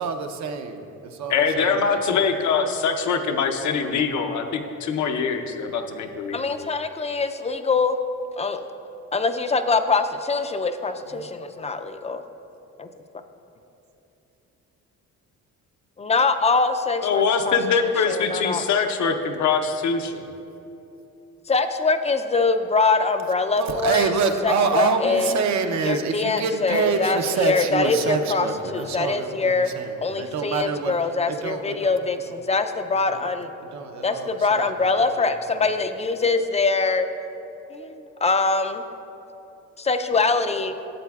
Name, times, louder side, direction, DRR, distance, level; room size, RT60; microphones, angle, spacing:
voice 1, 0.0-2.1 11.1-11.3 23.6-32.0 32.3-32.4 32.9-33.3 33.6-35.7, right 5 dB, 65° right, 5 dB, 0.7 m, -27 dB
voice 2, 1.3-6.5 17.0-20.2, left 5 dB, 70° left, 5 dB, 0.7 m, -23 dB
voice 3, 6.3-8.0 8.4-8.6 9.1-12.2 12.8-12.9 16.0-18.6 21.5-24.1 24.4-25.4 25.8-28.5 28.7-29.7 30.0-33.5 34.0-37.1 37.7-38.8 39.8-40.7, left 4 dB, 20° left, 8 dB, 0.4 m, -23 dB
12.5 x 7.5 x 2.3 m, 2.9 s
cardioid pair, 90°, 30 cm